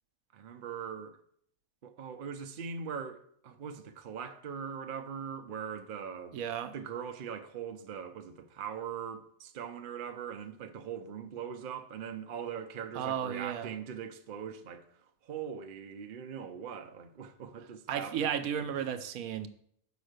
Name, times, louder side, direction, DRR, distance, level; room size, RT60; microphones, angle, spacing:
voice 1, 0.3-1.2 1.8-6.4 6.7-18.5, right 7 dB, 50° right, 0.6 m, -41 dB
voice 2, 6.3-6.7 12.9-13.7 17.9-19.5, right 9 dB, 80° right, 1.1 m, -34 dB
5.4 x 5.2 x 6.5 m
omnidirectional pair, 1.5 m